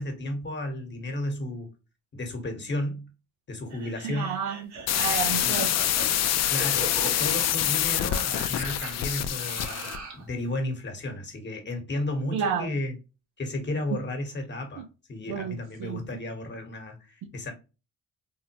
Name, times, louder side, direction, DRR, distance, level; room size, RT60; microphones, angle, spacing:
voice 1, 0.0-1.7 2.1-3.1 3.5-4.4 5.4-5.6 6.5-9.9 10.1-13.0 13.4-14.8 15.1-17.5, left 1 dB, 35° left, 1.1 m, -33 dB
sound 1, 3.7-10.3, right 3 dB, 65° right, 1.2 m, -40 dB
voice 2, 4.0-5.8 12.3-12.7 14.8-14.9 15.3-16.0, right 7 dB, 85° right, 0.7 m, -31 dB
sound 2, 4.9-10.0, left 11 dB, 60° left, 0.5 m, -26 dB
3.6 x 2.1 x 2.8 m
cardioid pair, 90°, 30 cm